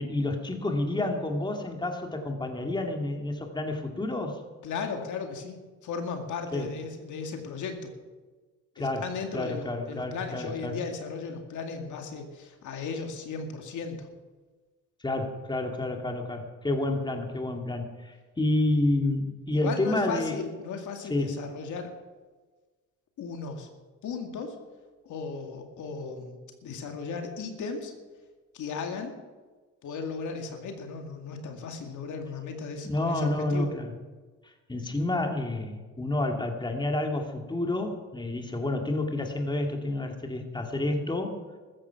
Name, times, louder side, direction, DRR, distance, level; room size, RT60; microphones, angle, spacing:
voice 1, 0.0-4.4 6.5-6.7 8.8-9.1 9.3-10.8 15.0-20.4 21.1-21.5 32.8-33.9 34.7-41.3, left 2 dB, 15° left, 3 dB, 2.3 m, -29 dB
voice 2, 4.6-7.9 8.8-14.1 19.5-21.9 23.2-23.7 24.0-24.6 25.0-27.9 28.5-29.1 29.8-33.7, left 5 dB, 75° left, 4 dB, 2.3 m, -36 dB
14.5 x 14.0 x 5.9 m, 1.3 s
cardioid pair, 90°, 30 cm